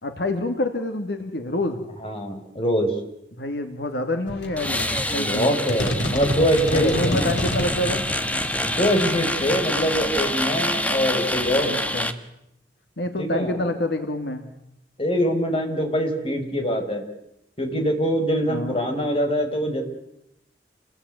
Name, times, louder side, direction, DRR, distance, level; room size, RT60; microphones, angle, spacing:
voice 1, 0.0-1.8 3.4-5.6 6.7-8.1 11.6-12.2 13.0-14.4 18.4-18.8, left 1 dB, 70° left, 6 dB, 2.6 m, -27 dB
voice 2, 2.0-3.0 5.2-7.3 8.6-11.7 13.2-13.6 15.0-17.0 17.6-19.8, equal, 30° left, 4 dB, 5.4 m, -23 dB
sound 1, 4.3-10.7, equal, 90° left, 4.5 m, -31 dB
sound 2, 4.6-12.1, left 1 dB, 10° left, 1.6 m, -27 dB
29.0 x 21.5 x 9.5 m, 0.82 s
head